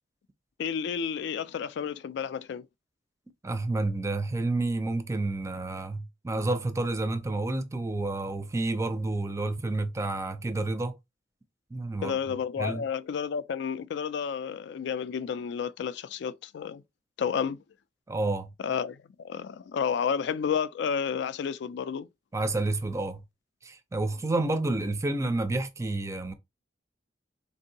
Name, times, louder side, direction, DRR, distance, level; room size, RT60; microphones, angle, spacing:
voice 1, 0.6-2.7 12.0-16.8 17.2-17.6 18.6-22.1, left 7 dB, 65° left, 0.3 m, -31 dB
voice 2, 3.4-11.0 11.7-12.2 12.6-12.8 18.1-18.5 22.3-23.2 23.6-26.3, right 2 dB, 15° right, 0.4 m, -29 dB
3.6 x 2.7 x 2.7 m
head